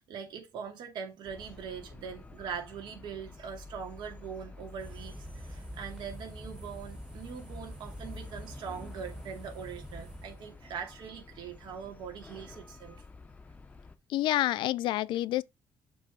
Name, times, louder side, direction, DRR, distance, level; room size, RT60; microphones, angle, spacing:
voice 1, 0.0-13.0, right 7 dB, 65° right, 2.3 m, -42 dB
sound 1, 1.2-14.0, left 3 dB, 15° left, 0.7 m, -49 dB
sound 2, 4.8-10.6, right 1 dB, 10° right, 1.3 m, -46 dB
voice 2, 14.1-15.4, left 15 dB, 75° left, 0.4 m, -28 dB
6.8 x 3.5 x 5.1 m
cardioid pair, 165°, 8 cm